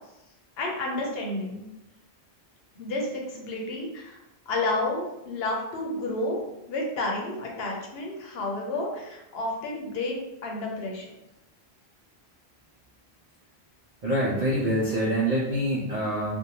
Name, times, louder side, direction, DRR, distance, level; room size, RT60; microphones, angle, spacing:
voice 1, 0.6-1.6 2.8-4.2 4.5-6.4 6.7-11.1, left 2 dB, 75° left, 0 dB, 0.9 m, -31 dB
voice 2, 14.0-16.3, right 1 dB, 55° right, -7 dB, 0.7 m, -25 dB
2.6 x 2.2 x 2.9 m, 0.89 s
omnidirectional pair, 1.1 m